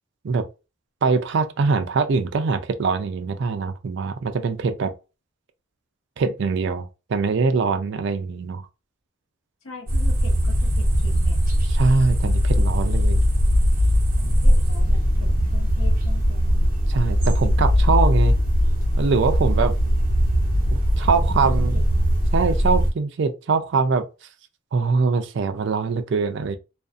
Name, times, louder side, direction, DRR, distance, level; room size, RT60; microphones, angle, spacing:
voice 1, 1.0-4.9 6.2-8.6 11.8-13.2 16.9-18.4 19.0-19.7 20.7-21.7 22.3-24.0 24.7-26.6, right 4 dB, 60° right, 0.3 m, -23 dB
voice 2, 9.6-11.4 14.2-16.7 21.5-22.0 22.4-22.6, left 3 dB, 85° left, 0.9 m, -42 dB
sound 1, 9.9-22.9, equal, 40° right, 0.9 m, -20 dB
2.5 x 2.3 x 2.4 m
head